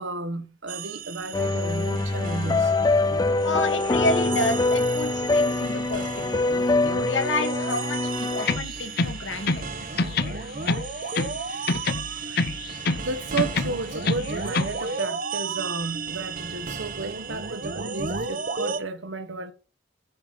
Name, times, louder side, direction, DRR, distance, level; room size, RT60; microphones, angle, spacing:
voice 1, 0.0-2.7 13.0-19.5, right 3 dB, 80° right, 1.4 m, -33 dB
sound 1, 0.7-18.8, right 4 dB, 45° right, 1.0 m, -34 dB
sound 2, 1.3-8.6, left 3 dB, 20° left, 0.3 m, -24 dB
voice 2, 3.4-6.1 6.3-6.5 6.8-9.6, left 2 dB, 75° left, 2.4 m, -29 dB
sound 3, 8.4-9.7 10.0-11.4 11.7-13.1 13.4-14.8, left 3 dB, 55° left, 0.8 m, -26 dB
9.6 x 5.4 x 5.6 m
head